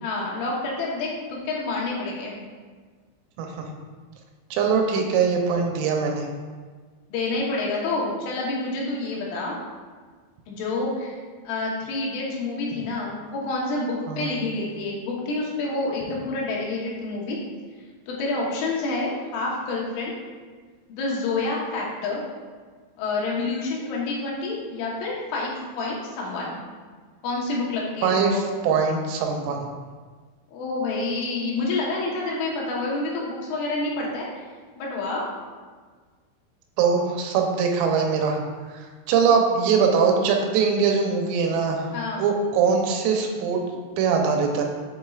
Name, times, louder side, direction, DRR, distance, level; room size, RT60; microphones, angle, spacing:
voice 1, 0.0-2.3 7.1-9.6 10.5-11.2 11.5-17.4 18.1-20.1 20.9-22.2 23.0-26.6 27.2-28.4 30.5-34.5 34.8-35.3 41.9-42.3, left 3 dB, 75° left, -3 dB, 3.5 m, -28 dB
voice 2, 3.4-3.7 4.5-6.3 14.1-14.4 28.0-29.7 36.8-38.4 38.7-41.9 42.2-43.6 44.0-44.6, right 5 dB, 85° right, 2 dB, 3.3 m, -22 dB
8.0 x 7.3 x 2.4 m, 1.5 s
omnidirectional pair, 5.9 m